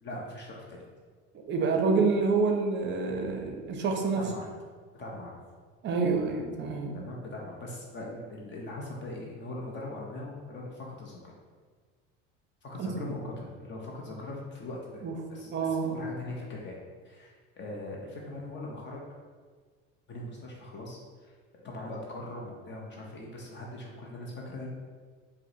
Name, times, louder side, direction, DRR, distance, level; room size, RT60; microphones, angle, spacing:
voice 1, 0.0-0.9 4.1-4.5 4.9-5.4 6.9-11.3 12.6-15.0 15.3-16.8 17.0-19.0 20.1-21.3 21.6-24.7, left 2 dB, 35° left, -2 dB, 0.6 m, -41 dB
voice 2, 1.5-4.3 5.8-7.0 12.8-13.1 15.0-15.2 15.5-15.9, right 4 dB, 35° right, 3 dB, 0.5 m, -27 dB
4.6 x 2.1 x 2.7 m, 1.5 s
supercardioid pair, 100°, 32 cm